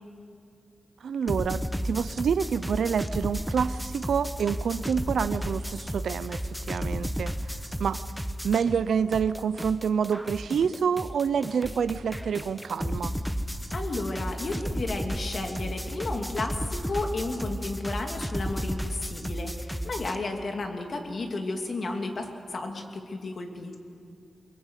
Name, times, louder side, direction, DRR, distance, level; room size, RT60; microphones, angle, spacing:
voice 1, 1.0-6.4 6.7-7.3 7.8-8.0 8.4-13.1, right 7 dB, 85° right, 15 dB, 0.7 m, -27 dB
sound 1, 1.3-8.9 9.1-20.2, equal, ahead, 1.2 m, -33 dB
voice 2, 13.7-23.8, left 2 dB, 55° left, 3 dB, 2.7 m, -33 dB
24.5 x 22.0 x 8.3 m, 2.4 s
wide cardioid pair, 105°, 0 cm